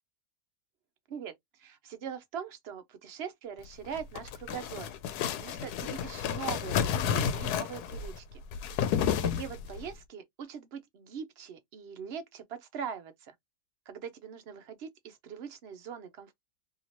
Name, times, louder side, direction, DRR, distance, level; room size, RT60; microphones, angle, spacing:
voice 1, 1.1-4.9 5.4-8.4 9.2-13.3 13.9-16.3, right 7 dB, 60° right, 0.6 m, -42 dB
sound 1, 3.8-9.9, left 8 dB, 85° left, 1.1 m, -31 dB
2.8 x 2.8 x 2.9 m
omnidirectional pair, 1.6 m